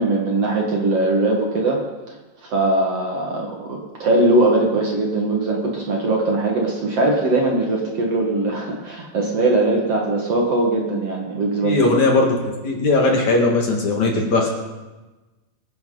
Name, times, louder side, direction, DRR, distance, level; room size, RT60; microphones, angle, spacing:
voice 1, 0.0-1.8 2.4-11.8, right 2 dB, 50° right, -1 dB, 2.4 m, -20 dB
voice 2, 11.6-12.4 12.6-14.5, left 2 dB, 55° left, 0 dB, 2.8 m, -18 dB
25.0 x 10.0 x 4.0 m, 1.2 s
omnidirectional pair, 4.4 m